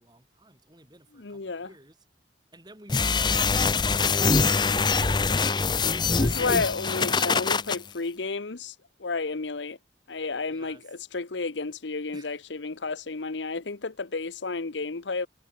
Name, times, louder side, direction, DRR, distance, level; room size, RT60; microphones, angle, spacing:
voice 1, 0.0-1.9 2.5-3.0 6.2-6.8 10.5-10.8 12.1-12.4, right 2 dB, 25° right, 4.8 m, -51 dB
voice 2, 1.1-1.7 6.1-9.8 10.1-15.3, left 4 dB, 85° left, 1.0 m, -32 dB
sound 1, 2.9-7.8, left 4 dB, 25° left, 0.7 m, -24 dB
head